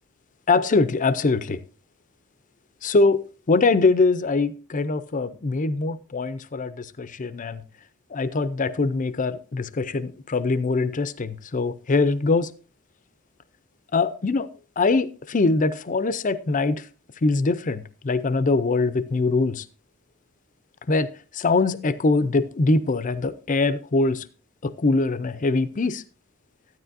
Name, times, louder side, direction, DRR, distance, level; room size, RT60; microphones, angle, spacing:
voice 1, 0.5-1.6 2.8-7.6 8.1-12.5 13.9-14.5 14.8-16.8 17.2-19.6 20.9-24.3 24.6-26.0, left 3 dB, 40° left, 0.5 m, -23 dB
12.5 x 9.5 x 2.6 m
head